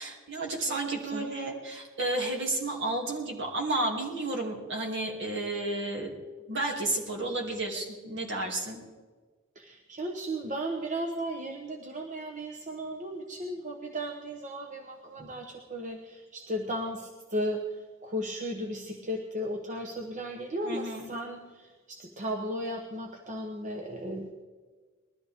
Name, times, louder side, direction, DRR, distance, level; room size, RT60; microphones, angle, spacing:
voice 1, 0.0-6.1 6.5-8.8 20.6-21.1, right 2 dB, 60° right, 0 dB, 2.7 m, -32 dB
voice 2, 9.6-17.6 18.0-24.3, equal, 35° right, 2 dB, 1.0 m, -35 dB
20.5 x 13.0 x 3.6 m, 1.4 s
head